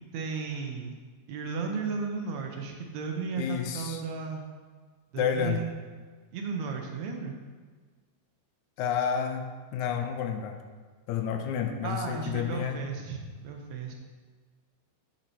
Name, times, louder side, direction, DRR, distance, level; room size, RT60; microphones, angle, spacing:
voice 1, 0.1-1.0 1.3-4.4 5.1-5.7 6.3-7.4 11.8-13.9, right 5 dB, 75° right, 2 dB, 2.1 m, -34 dB
voice 2, 3.4-4.0 5.2-5.6 8.8-9.4 9.7-10.6 11.1-12.8, left 8 dB, 85° left, 6 dB, 2.0 m, -30 dB
10.5 x 4.4 x 4.2 m, 1.5 s
omnidirectional pair, 3.4 m